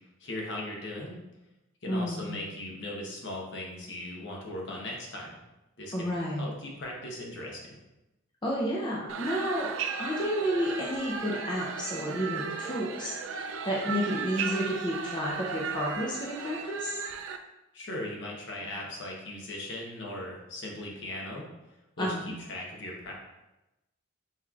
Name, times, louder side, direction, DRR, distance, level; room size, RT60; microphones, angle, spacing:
voice 1, 0.2-1.2 1.8-5.4 5.8-7.7 17.7-21.5 22.0-22.1 22.5-23.1, left 1 dB, 60° left, -2 dB, 0.9 m, -38 dB
voice 2, 1.9-2.4 5.9-6.5 8.4-9.7 10.0-17.0 22.0-22.3, equal, 20° left, -4 dB, 0.5 m, -31 dB
sound 1, 9.1-17.4, right 6 dB, 70° right, 0.3 m, -36 dB
5.6 x 3.0 x 2.3 m, 0.96 s
head